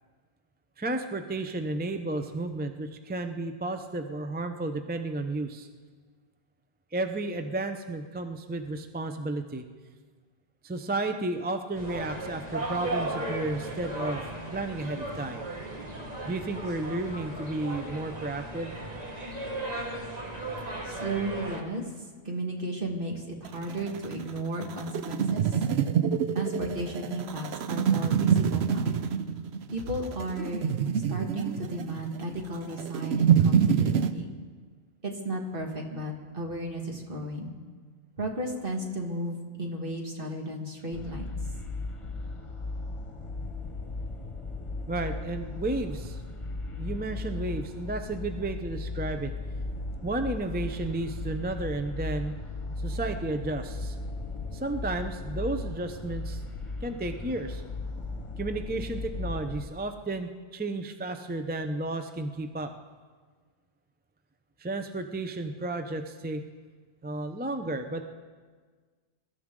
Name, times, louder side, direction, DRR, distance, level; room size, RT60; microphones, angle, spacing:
voice 1, 0.8-5.7 6.9-9.7 10.6-14.2 14.5-15.4 16.2-18.7 44.9-46.2 46.7-49.3 50.0-52.3 52.8-54.0 54.5-56.4 56.8-57.6 58.4-62.7 64.6-66.4 67.0-68.1, right 2 dB, 10° right, 7 dB, 0.5 m, -32 dB
sound 1, 11.8-21.6, right 2 dB, 40° right, 1.6 m, -36 dB
voice 2, 20.8-21.8 22.2-25.4 26.3-29.0 29.7-30.7 31.1-34.3 35.0-37.5 38.2-41.3, right 1 dB, 55° right, 1 dB, 2.0 m, -34 dB
sound 2, 23.4-34.1, right 8 dB, 80° right, 0.9 m, -26 dB
sound 3, 40.9-59.7, left 2 dB, 30° left, 1.1 m, -36 dB
23.0 x 12.5 x 3.8 m, 1.5 s
omnidirectional pair, 1.1 m